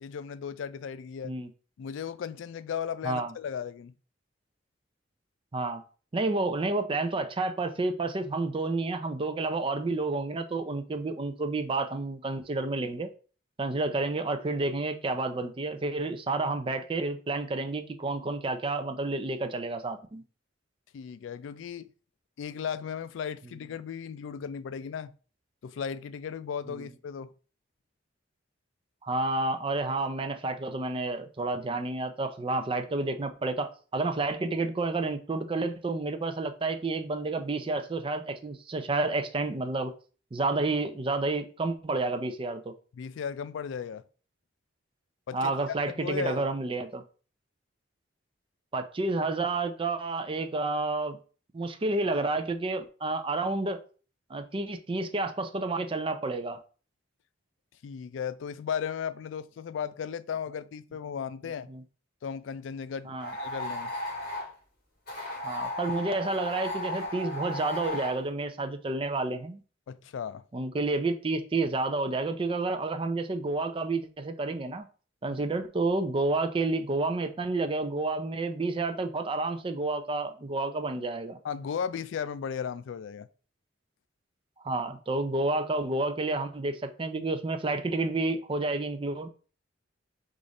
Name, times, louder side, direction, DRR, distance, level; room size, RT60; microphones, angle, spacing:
voice 1, 0.0-1.3 1.8-3.9 20.9-21.9 22.4-25.1 25.6-27.3 42.9-44.0 45.3-46.5 57.8-61.7 62.2-63.1 63.4-63.9 69.9-70.4 81.4-83.3, left 7 dB, 70° left, 0.3 m, -36 dB
voice 2, 6.1-13.1 13.6-20.2 26.7-26.9 29.0-39.9 40.3-42.7 45.3-47.0 48.7-51.2 51.5-53.8 54.3-56.6 61.7-61.8 63.1-63.3 65.4-69.6 70.5-74.9 75.2-81.4 84.6-89.3, right 2 dB, 30° right, 0.5 m, -30 dB
orange juice, 63.2-64.5 65.1-68.2, left 1 dB, 50° left, 2.1 m, -35 dB
4.9 x 2.5 x 4.0 m
head